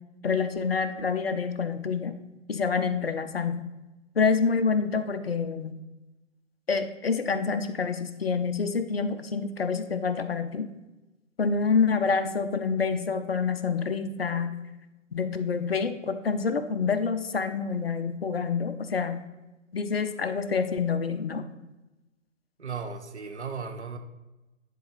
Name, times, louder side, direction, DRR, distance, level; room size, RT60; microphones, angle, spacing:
voice 1, 0.2-2.2 2.5-3.7 4.2-5.7 6.7-10.7 11.4-14.5 15.1-19.2 19.7-21.5, left 5 dB, 50° left, 9 dB, 0.7 m, -27 dB
voice 2, 22.6-24.0, right 5 dB, 60° right, 6 dB, 1.2 m, -36 dB
10.0 x 4.1 x 5.0 m, 1.0 s
figure-of-eight pair, 150°, 39 cm